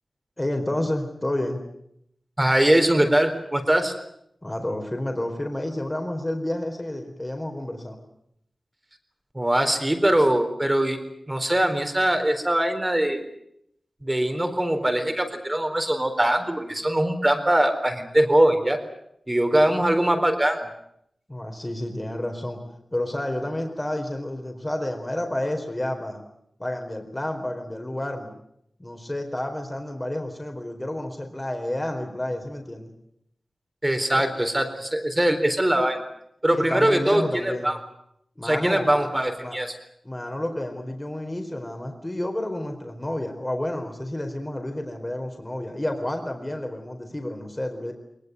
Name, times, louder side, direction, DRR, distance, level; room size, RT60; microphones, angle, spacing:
voice 1, 0.4-1.6 4.4-8.0 21.3-22.6 22.9-26.2 26.6-28.3 28.8-32.9 34.1-34.2 36.5-37.7 38.4-38.9 39.4-39.6 40.0-47.9, left 1 dB, 20° left, 4 dB, 4.4 m, -30 dB
voice 2, 2.4-3.9 9.3-13.3 14.0-18.8 19.3-20.7 33.8-36.0 36.4-37.8 38.4-39.7, right 1 dB, 20° right, 6 dB, 4.1 m, -22 dB
21.5 x 21.0 x 9.5 m, 0.75 s
wide cardioid pair, 70°, 0 cm